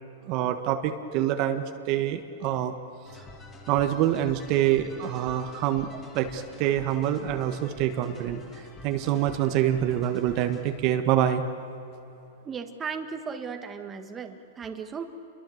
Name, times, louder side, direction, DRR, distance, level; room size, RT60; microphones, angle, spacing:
voice 1, 0.3-2.7 3.7-8.4 8.8-11.4, right 11 dB, 40° right, 6 dB, 1.5 m, -26 dB
sound 1, 3.1-11.0, left 2 dB, 20° left, 3.7 m, -47 dB
voice 2, 12.4-15.0, right 6 dB, 15° right, 5 dB, 1.7 m, -36 dB
29.0 x 23.0 x 8.0 m, 2.9 s
hypercardioid pair, 145°, 0 cm